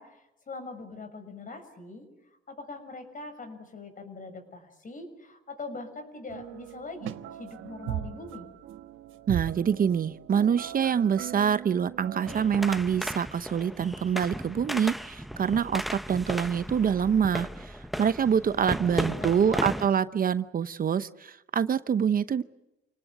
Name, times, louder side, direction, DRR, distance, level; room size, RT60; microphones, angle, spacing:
voice 1, 0.0-2.1 2.5-8.5 18.6-19.7, left 3 dB, 40° left, 7 dB, 6.6 m, -42 dB
sound 1, 6.3-12.6, right 12 dB, 85° right, 1.1 m, -39 dB
voice 2, 9.3-22.4, right 7 dB, 45° right, 13 dB, 0.8 m, -26 dB
sound 2, 12.3-19.9, equal, ahead, 1.0 m, -35 dB
28.5 x 18.5 x 9.4 m, 0.95 s
cardioid pair, 90°, 20 cm